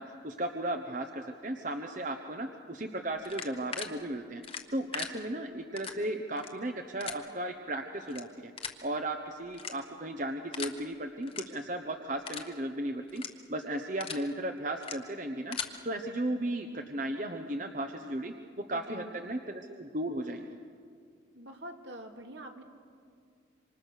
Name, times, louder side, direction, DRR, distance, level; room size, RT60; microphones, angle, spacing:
voice 1, 0.0-4.4 4.7-8.5 8.8-15.6 15.8-18.3 18.7-20.5, right 1 dB, 40° right, 5 dB, 1.0 m, -35 dB
sound 1, 3.2-3.9 4.4-5.1 5.8-5.9 6.3-6.5 7.0-7.1 8.0-8.2 8.6-8.8 9.5-10.0 10.5-10.7 11.2-11.4 11.8-11.9 12.2-12.5 13.1-13.3 13.8-14.2 14.8-14.9 15.3-15.7, left 7 dB, 30° left, 1.2 m, -38 dB
voice 2, 18.7-19.1 21.3-22.6, right 1 dB, 70° right, 3 dB, 2.6 m, -45 dB
26.5 x 26.0 x 6.6 m, 2.2 s
head